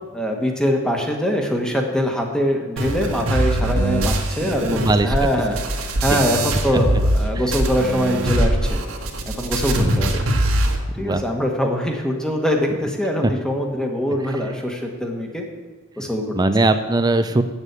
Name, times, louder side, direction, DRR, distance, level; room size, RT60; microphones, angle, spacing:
voice 1, 0.1-5.6 6.0-8.8 9.4-10.2 10.9-15.4 16.0-16.2, equal, 5° left, 2 dB, 1.4 m, -23 dB
sound 1, 2.8-7.2 7.5-10.8, right 1 dB, 85° right, 1.6 m, -22 dB
voice 2, 4.4-5.1 6.1-6.2 7.3-7.4 9.8-10.1 11.0-11.2 13.2-13.3 16.3-17.4, right 2 dB, 20° right, 9 dB, 0.5 m, -20 dB
8.1 x 7.4 x 8.2 m, 1.3 s
head